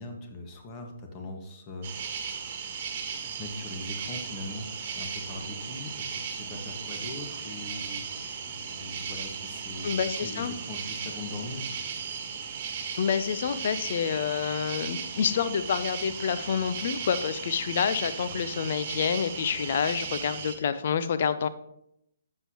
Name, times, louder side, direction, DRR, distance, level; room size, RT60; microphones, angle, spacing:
voice 1, 0.0-2.2 3.4-4.7 4.9-11.7 14.4-14.5 18.2-18.4, left 2 dB, 25° left, 3 dB, 1.7 m, -41 dB
sound 1, 1.8-20.6, right 6 dB, 40° right, 1.5 m, -36 dB
voice 2, 9.8-10.5 13.0-21.5, left 7 dB, 50° left, 12 dB, 0.7 m, -28 dB
12.0 x 7.6 x 3.0 m, 0.77 s
figure-of-eight pair, 135°, 0 cm